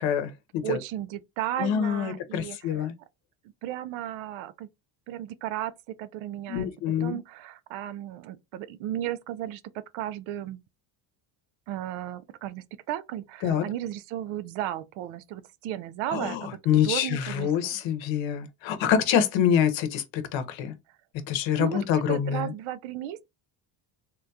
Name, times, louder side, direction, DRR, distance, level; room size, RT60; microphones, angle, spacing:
voice 1, 0.0-0.8 1.6-2.9 6.5-7.2 13.4-13.6 16.1-20.7 21.3-22.5, left 9 dB, 65° left, 0.8 m, -26 dB
voice 2, 0.6-2.9 3.6-4.7 5.1-5.7 6.0-6.7 7.0-10.6 11.7-16.5 16.8-17.8 18.9-19.0 21.6-23.2, right 12 dB, 80° right, 0.5 m, -34 dB
3.6 x 2.3 x 2.7 m
cardioid pair, 150°, 49 cm